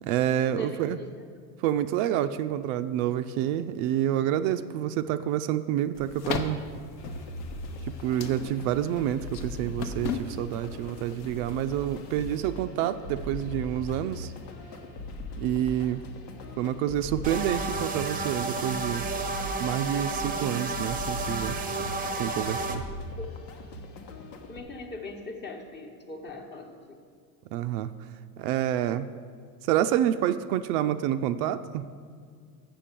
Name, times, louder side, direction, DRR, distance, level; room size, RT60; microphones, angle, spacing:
voice 1, 0.0-1.0 1.6-6.6 7.9-14.3 15.4-16.0 16.6-19.1 19.6-21.6 22.2-22.8 27.5-27.9 28.4-29.1 29.7-31.9, right 11 dB, 65° right, 10 dB, 0.5 m, -28 dB
voice 2, 0.6-1.2 23.2-23.3 24.5-26.8, left 3 dB, 20° left, 3 dB, 1.1 m, -40 dB
sound 1, 5.9-12.5, left 6 dB, 45° left, 0.8 m, -38 dB
sound 2, 7.0-24.6, left 2 dB, 90° left, 1.3 m, -40 dB
sound 3, 17.2-22.8, right 3 dB, 20° right, 0.7 m, -32 dB
7.1 x 6.9 x 7.4 m, 2.1 s
supercardioid pair, 120°, 47 cm